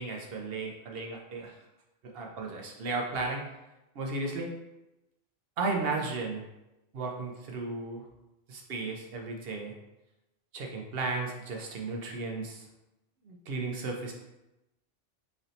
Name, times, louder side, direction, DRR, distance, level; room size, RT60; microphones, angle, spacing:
voice 1, 0.0-1.6 2.1-3.4 3.9-4.5 5.6-6.4 6.9-8.0 8.5-9.7 10.5-12.7 13.2-14.1, right 3 dB, 60° right, 1 dB, 0.8 m, -34 dB
3.2 x 2.7 x 3.9 m, 0.94 s
omnidirectional pair, 1.2 m